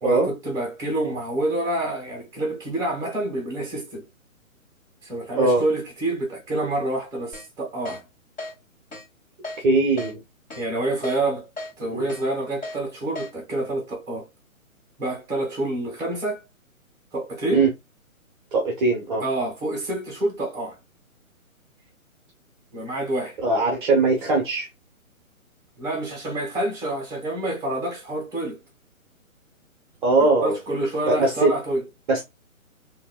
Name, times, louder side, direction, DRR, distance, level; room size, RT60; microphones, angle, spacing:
voice 1, 0.0-4.1 5.0-8.0 10.5-11.5 11.8-14.3 15.0-16.4 17.1-17.7 19.2-20.8 22.7-23.4 25.8-28.6 30.2-31.8, right 1 dB, 10° right, 1.5 m, -27 dB
Keyboard (musical), 7.3-7.5 7.9-8.0 8.4-8.5 8.9-9.0 9.4-9.6 10.0-10.1 10.5-10.6 11.0-11.2 11.6-11.7 12.1-12.2 12.6-12.8 13.2-13.3, left 2 dB, 15° left, 2.0 m, -34 dB
voice 2, 9.6-10.2 11.9-12.1 17.5-17.7 18.5-19.2 23.4-24.7 30.0-30.6 31.1-31.5 32.1-32.2, right 3 dB, 35° right, 0.9 m, -20 dB
3.8 x 2.8 x 2.2 m
hypercardioid pair, 145°, 42 cm